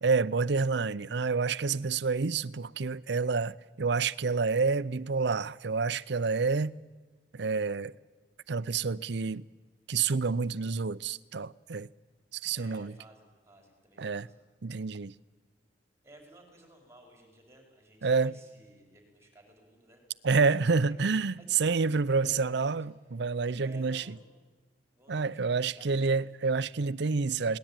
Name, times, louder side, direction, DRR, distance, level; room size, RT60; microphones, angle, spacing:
voice 1, 0.0-6.8 7.3-7.9 8.5-9.4 9.9-11.9 12.3-12.9 14.0-14.3 14.6-15.1 18.0-18.4 20.2-24.2 25.1-27.6, right 4 dB, 70° right, 0.6 m, -28 dB
voice 2, 12.5-14.4 16.0-20.0 20.4-21.1 21.4-22.8 23.5-24.3 24.9-26.3, right 1 dB, 15° right, 4.8 m, -56 dB
21.5 x 18.5 x 9.0 m
head